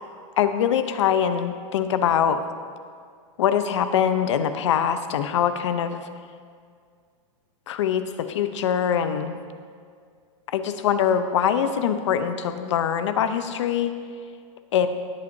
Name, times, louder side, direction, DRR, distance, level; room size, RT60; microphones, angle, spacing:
voice 1, 0.4-2.4 3.4-6.1 7.7-9.4 10.5-13.9 14.7-14.9, left 8 dB, 60° left, 10 dB, 0.7 m, -23 dB
17.5 x 8.1 x 2.7 m, 2.1 s
supercardioid pair, 170°, 17 cm